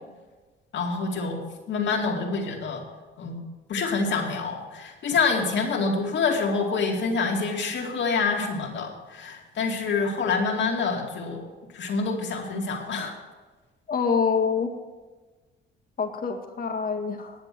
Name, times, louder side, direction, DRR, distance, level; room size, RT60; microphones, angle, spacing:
voice 1, 0.7-1.4 1.7-2.8 3.2-3.3 3.7-11.4 11.7-13.2, left 4 dB, 65° left, 0 dB, 2.4 m, -26 dB
voice 2, 13.9-14.7 16.0-17.3, left 5 dB, 45° left, 4 dB, 1.9 m, -26 dB
10.5 x 7.8 x 7.6 m, 1.3 s
cardioid pair, 90°, 20 cm